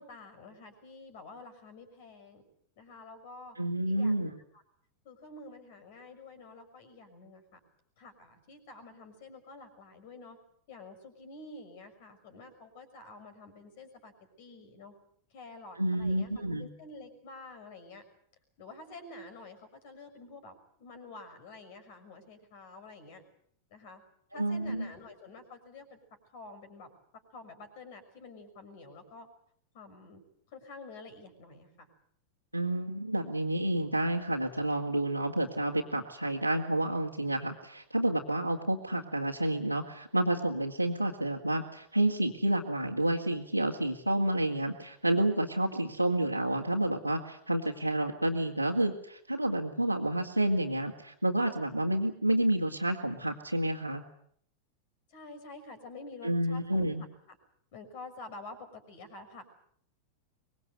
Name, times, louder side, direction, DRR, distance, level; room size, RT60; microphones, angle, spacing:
voice 1, 0.0-2.4 2.8-3.6 3.8-4.6 5.0-7.6 8.0-10.4 10.7-14.1 14.4-14.9 15.3-18.0 18.6-23.2 23.7-24.0 24.3-26.0 26.3-29.3 29.7-30.2 30.5-31.9 55.1-57.4 57.7-59.4, left 3 dB, 50° left, 9 dB, 6.2 m, -49 dB
voice 2, 3.6-4.3 15.8-16.7 24.3-24.9 32.5-54.0 56.2-57.0, right 1 dB, 90° right, -4 dB, 2.1 m, -29 dB
24.5 x 22.5 x 8.1 m, 0.65 s
figure-of-eight pair, 90°, 0 cm